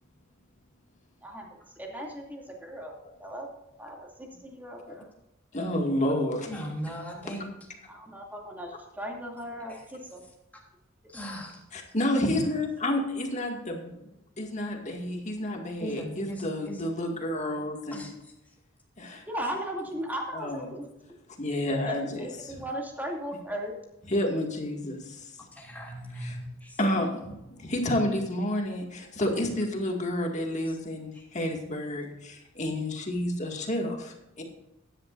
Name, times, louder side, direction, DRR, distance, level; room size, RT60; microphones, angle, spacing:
voice 1, 1.2-3.5 3.8-5.1 7.9-10.2 19.3-20.8 21.8-23.7, equal, 10° right, -1 dB, 2.5 m, -37 dB
voice 2, 5.5-6.5 11.7-14.0 14.4-18.1 19.0-19.3 20.3-20.7 21.4-22.5 24.1-25.2 26.2-26.4 26.8-34.4, left 1 dB, 35° left, 2 dB, 2.0 m, -30 dB
voice 3, 6.4-7.5 9.7-9.8 11.1-11.6 15.8-16.8 17.9-18.1 25.5-26.9 30.7-30.8 31.1-31.3, equal, 10° left, -2 dB, 3.2 m, -38 dB
15.5 x 11.0 x 2.6 m, 0.89 s
head